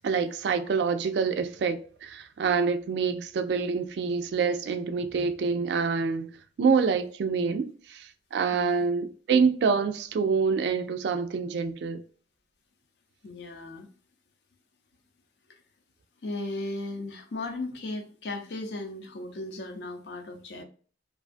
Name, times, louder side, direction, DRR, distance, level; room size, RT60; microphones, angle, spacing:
voice 1, 0.0-6.3 6.6-12.0, right 5 dB, 70° right, 0.3 m, -26 dB
voice 2, 8.5-8.8 13.2-13.9 16.2-20.6, left 2 dB, 70° left, 0.5 m, -36 dB
2.5 x 2.3 x 2.4 m
head